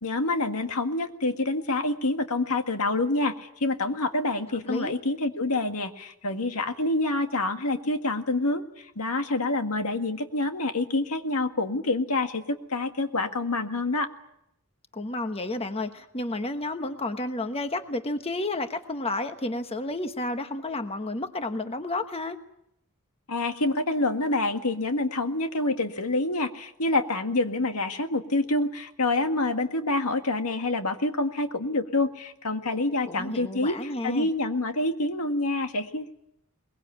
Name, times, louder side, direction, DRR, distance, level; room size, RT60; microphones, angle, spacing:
voice 1, 0.0-14.1 23.3-36.2, left 2 dB, 85° left, 6 dB, 1.9 m, -27 dB
voice 2, 14.9-22.4 33.1-34.3, left 2 dB, 25° left, 7 dB, 1.2 m, -31 dB
22.5 x 21.5 x 8.7 m, 0.78 s
head